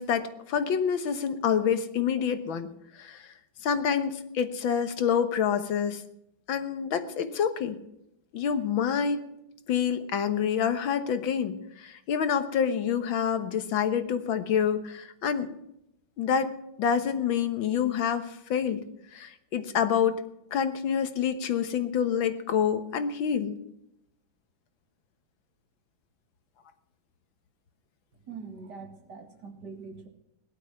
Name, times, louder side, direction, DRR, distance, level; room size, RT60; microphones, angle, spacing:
voice 1, 0.0-2.7 3.0-3.2 3.6-6.0 6.5-7.8 8.3-9.3 9.7-15.6 16.2-18.8 19.1-20.2 20.5-23.6, left 7 dB, 90° left, 10 dB, 2.0 m, -27 dB
voice 2, 28.3-30.1, right 5 dB, 60° right, 5 dB, 2.6 m, -43 dB
17.5 x 12.0 x 6.0 m, 0.81 s
omnidirectional pair, 2.1 m